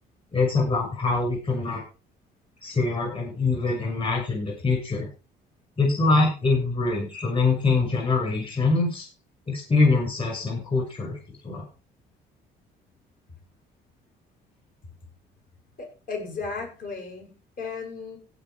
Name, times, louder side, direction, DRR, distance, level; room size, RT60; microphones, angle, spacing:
voice 1, 0.3-1.8 2.6-5.1 5.8-9.1 9.5-11.6, left 3 dB, 30° left, 0 dB, 6.4 m, -24 dB
voice 2, 15.8-18.2, left 4 dB, 55° left, 2 dB, 7.2 m, -35 dB
16.5 x 5.8 x 5.1 m, 0.34 s
cardioid pair, 110°, 17 cm